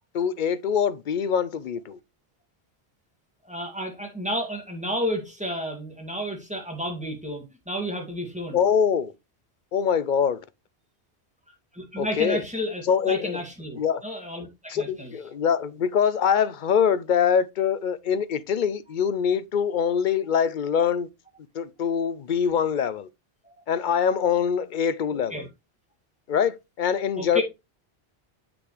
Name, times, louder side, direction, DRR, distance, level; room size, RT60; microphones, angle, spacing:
voice 1, 0.1-2.0 8.5-9.1 9.7-10.4 12.0-12.4 12.9-13.4 13.8-14.0 14.7-21.1 21.5-23.1 23.7-25.4 26.3-27.4, left 7 dB, 55° left, 0.6 m, -24 dB
voice 2, 3.4-8.6 11.7-15.1 23.4-23.6 25.1-25.5 27.2-27.4, equal, 5° right, 2.3 m, -31 dB
7.9 x 6.0 x 3.2 m
omnidirectional pair, 1.1 m